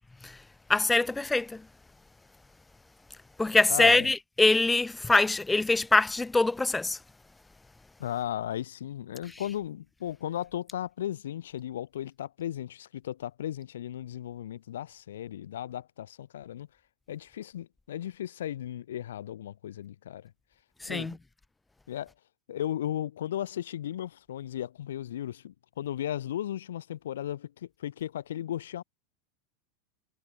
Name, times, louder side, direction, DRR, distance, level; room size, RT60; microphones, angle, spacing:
voice 1, 0.7-1.7 3.4-7.0 20.8-21.2, left 3 dB, 10° left, 0.7 m, -24 dB
voice 2, 3.7-4.1 8.0-16.7 17.1-20.3 20.9-21.2 21.9-22.1 22.5-28.8, left 11 dB, 75° left, 1.7 m, -35 dB
hypercardioid pair, 95°, 0 cm